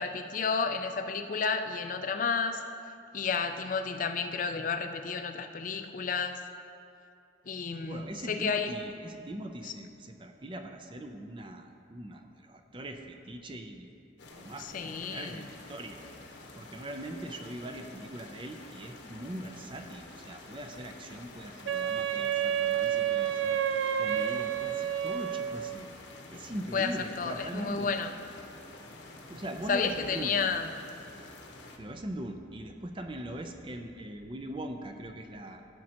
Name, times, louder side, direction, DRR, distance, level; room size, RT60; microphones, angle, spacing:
voice 1, 0.0-2.6 3.1-6.4 7.5-8.7 9.6-9.7 14.6-15.4 26.7-28.1 29.7-30.7, left 5 dB, 45° left, 7 dB, 0.4 m, -31 dB
voice 2, 7.8-13.9 14.3-16.0 16.6-23.6 24.0-25.9 26.3-27.9 29.3-30.4 31.8-35.7, right 1 dB, 25° right, 5 dB, 0.5 m, -41 dB
sound 1, 14.2-31.8, left 2 dB, 70° left, 0.9 m, -49 dB
Wind instrument woodwind instrument, 21.7-25.8, right 9 dB, 80° right, 0.4 m, -30 dB
14.5 x 6.2 x 2.9 m, 2.6 s
head